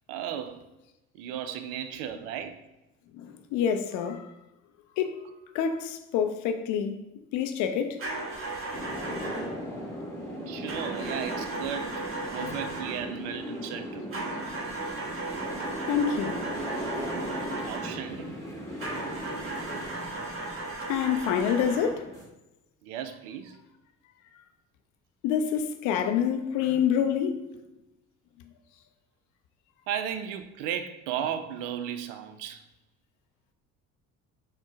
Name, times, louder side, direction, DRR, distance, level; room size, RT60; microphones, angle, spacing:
voice 1, 0.1-0.6 1.2-2.6 10.5-12.0 12.3-14.1 17.6-18.4 22.8-23.5 29.9-32.6, right 9 dB, 50° right, 0.5 m, -35 dB
voice 2, 3.1-4.3 5.0-5.2 5.5-7.0 7.3-8.0 12.3-12.7 15.9-16.4 20.9-22.1 25.2-27.4, left 8 dB, 45° left, 0.5 m, -27 dB
sound 1, 8.0-9.6 10.7-13.1 14.1-18.1 18.8-22.0, right 2 dB, 30° right, 1.1 m, -36 dB
sound 2, 8.7-22.2, equal, 5° left, 1.4 m, -38 dB
6.2 x 2.2 x 3.5 m
figure-of-eight pair, 55°, 43 cm